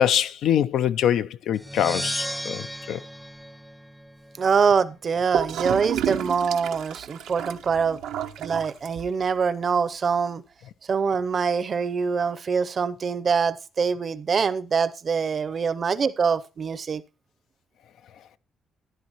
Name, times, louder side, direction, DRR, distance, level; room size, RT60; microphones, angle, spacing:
voice 1, 0.0-3.0, left 10 dB, 75° left, 0.4 m, -23 dB
sound 1, 1.5-4.4, equal, ahead, 0.5 m, -34 dB
voice 2, 4.4-8.0 8.4-10.4 10.9-17.0, right 5 dB, 45° right, 0.6 m, -24 dB
Gurgling / Toilet flush, 5.3-9.3, right 10 dB, 90° right, 0.7 m, -31 dB
13.5 x 10.5 x 3.0 m
cardioid pair, 90°, 0 cm